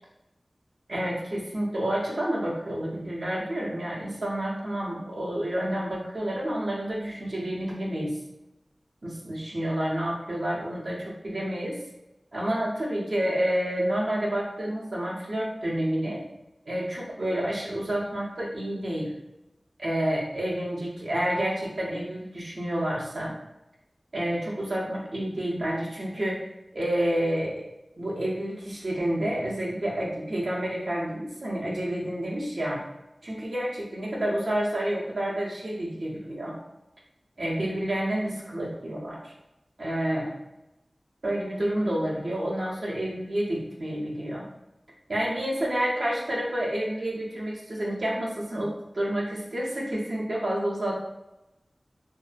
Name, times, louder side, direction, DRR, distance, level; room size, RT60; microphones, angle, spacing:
voice 1, 0.9-8.2 9.0-11.8 12.3-16.2 16.7-19.1 19.8-23.3 24.1-26.4 26.7-27.5 28.0-32.8 33.2-36.6 37.4-39.3 39.8-40.3 41.2-44.4 45.1-51.0, right 1 dB, 70° right, -4 dB, 0.7 m, -29 dB
2.6 x 2.3 x 2.5 m, 0.92 s
wide cardioid pair, 60°, 0 cm